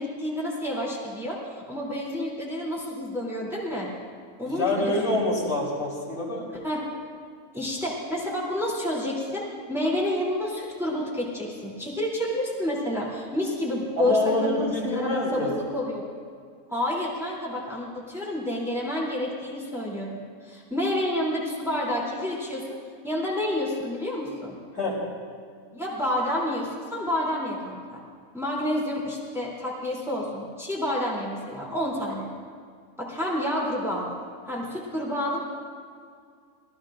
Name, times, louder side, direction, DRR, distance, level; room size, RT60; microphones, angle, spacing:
voice 1, 0.0-3.9 4.4-5.2 6.6-6.8 7.5-16.1 16.7-20.2 20.4-22.8 23.0-24.6 25.7-28.0 28.3-32.3 33.0-34.2 34.5-35.5, left 1 dB, ahead, -5 dB, 3.0 m, -29 dB
voice 2, 4.5-6.4 14.0-15.5 24.7-25.0, left 1 dB, 70° left, -5 dB, 4.3 m, -26 dB
24.5 x 18.0 x 2.5 m, 2.1 s
omnidirectional pair, 1.5 m